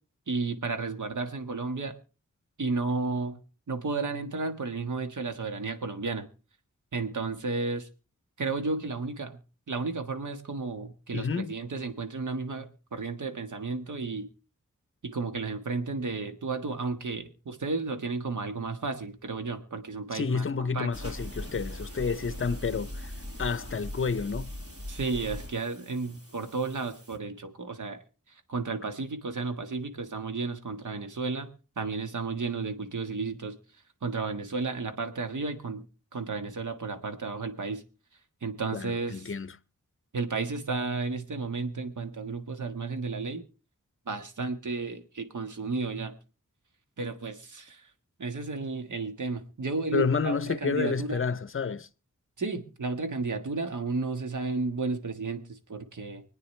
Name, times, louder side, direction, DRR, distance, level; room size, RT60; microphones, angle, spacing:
voice 1, 0.3-1.9 2.6-3.4 3.7-6.2 6.9-7.9 8.4-9.4 9.7-14.3 15.0-20.9 24.9-28.0 28.3-31.5 31.8-33.5 34.0-35.8 36.1-37.8 38.4-39.3 40.1-43.4 44.1-46.1 47.0-47.9 48.2-51.2 52.4-56.2, right 3 dB, 75° right, 1.5 m, -33 dB
voice 2, 11.1-11.5 20.1-23.1 23.4-24.5 38.7-39.5 49.9-51.9, left 5 dB, 45° left, 0.6 m, -30 dB
sound 1, 20.9-27.2, left 1 dB, 50° right, 4.8 m, -40 dB
25.0 x 9.2 x 3.2 m
wide cardioid pair, 75°, 30 cm